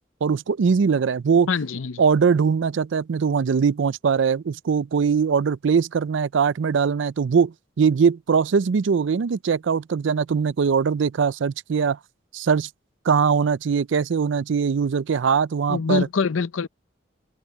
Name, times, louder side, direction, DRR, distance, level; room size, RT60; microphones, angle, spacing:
voice 1, 0.2-1.5 2.0-12.0 12.3-12.7 13.1-16.1, right 6 dB, 70° right, 0.4 m, -21 dB
voice 2, 1.5-2.0 15.7-16.7, left 5 dB, 90° left, 0.6 m, -24 dB
open air
head